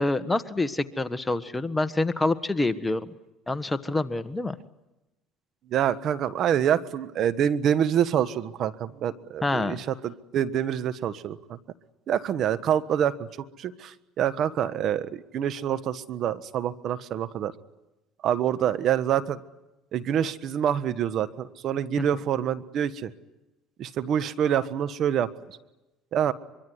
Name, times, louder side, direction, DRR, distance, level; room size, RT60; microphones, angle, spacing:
voice 1, 0.0-3.1 3.5-4.5 9.4-9.8 22.0-22.2, left 2 dB, 15° left, 11 dB, 1.4 m, -27 dB
voice 2, 5.7-11.6 12.1-13.3 13.6-17.5 18.2-19.4 19.9-23.1 23.8-25.3 26.1-26.3, right 9 dB, 55° right, 12 dB, 1.4 m, -26 dB
24.0 x 24.0 x 9.6 m, 1.0 s
supercardioid pair, 85°, 0 cm